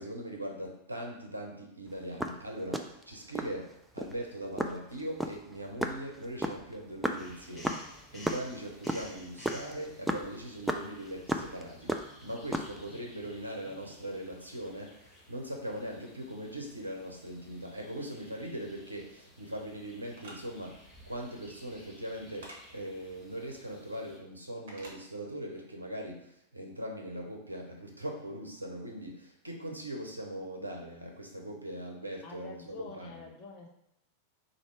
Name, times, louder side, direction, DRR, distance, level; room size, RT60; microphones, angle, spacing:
voice 1, 0.0-33.3, right 1 dB, 85° right, 1 dB, 0.8 m, -40 dB
sound 1, 2.0-3.6 4.0-4.2 4.6-8.4 8.7-11.6 11.9-12.8, right 1 dB, 5° right, 0.4 m, -33 dB
sound 2, 7.2-24.2, left 1 dB, 15° left, 1.3 m, -55 dB
sound 3, 20.1-20.4 22.4-22.6 24.7-25.0, right 1 dB, 60° right, 1.0 m, -47 dB
voice 2, 32.2-33.7, left 3 dB, 35° left, 0 dB, 1.0 m, -47 dB
4.2 x 2.7 x 4.6 m, 0.78 s
figure-of-eight pair, 90°, 0 cm